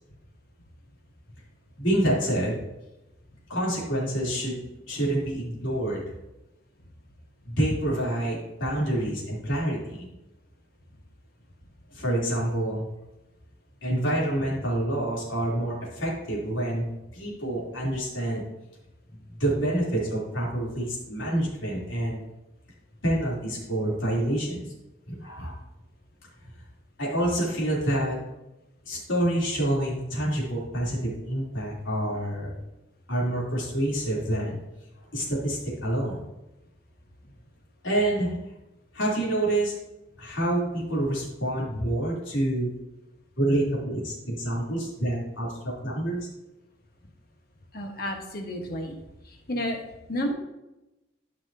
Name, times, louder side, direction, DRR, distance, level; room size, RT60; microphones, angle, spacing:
voice 1, 1.8-2.6 3.5-6.0 7.5-10.1 11.9-12.9 13.8-16.8 17.1-18.4 19.3-22.2 23.0-24.6 25.1-25.6 27.0-28.2 28.8-32.6 33.1-34.6 35.1-36.2 37.8-38.3 38.9-39.7 40.2-42.7 43.4-46.3, right 1 dB, 85° left, -5 dB, 3.3 m, -27 dB
voice 2, 47.7-49.0 49.5-49.8 50.1-50.3, equal, 50° left, 3 dB, 1.4 m, -30 dB
13.5 x 5.8 x 2.8 m, 0.97 s
head